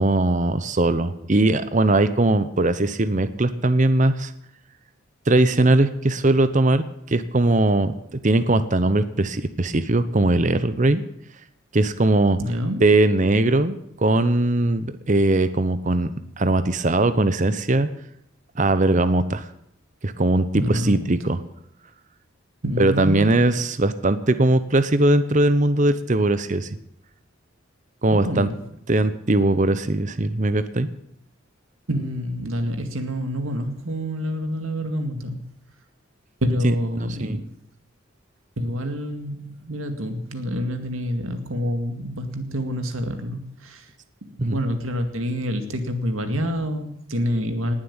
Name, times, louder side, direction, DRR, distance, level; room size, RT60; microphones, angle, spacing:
voice 1, 0.0-4.3 5.3-7.9 8.2-11.0 11.7-12.4 12.8-16.1 16.4-17.9 18.6-19.5 20.0-21.4 22.8-26.7 28.0-28.5 28.9-30.9 36.6-37.4 44.4-44.6, right 2 dB, 40° right, 12 dB, 0.8 m, -20 dB
voice 2, 12.4-12.8 20.5-21.1 22.6-23.3 28.1-28.5 31.9-35.4 36.4-37.5 38.6-43.9 44.2-47.7, equal, 90° right, 6 dB, 2.1 m, -27 dB
19.0 x 7.6 x 8.8 m, 0.76 s
head